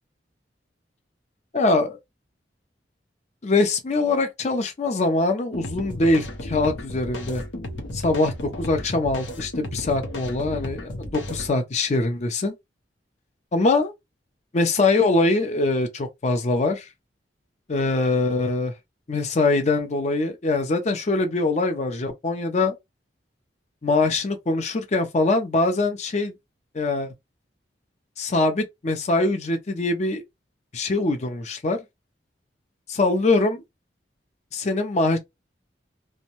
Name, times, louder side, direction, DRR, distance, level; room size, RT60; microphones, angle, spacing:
voice 1, 1.5-2.0 3.4-7.4 7.9-12.5 13.5-13.9 14.5-16.9 17.7-18.7 19.1-22.7 23.8-26.3 26.7-27.1 28.2-30.2 30.7-31.8 32.9-33.6 34.5-35.2, left 2 dB, 40° left, 0.5 m, -23 dB
sound 1, 5.5-11.5, left 1 dB, 80° left, 0.8 m, -34 dB
2.6 x 2.1 x 2.9 m
head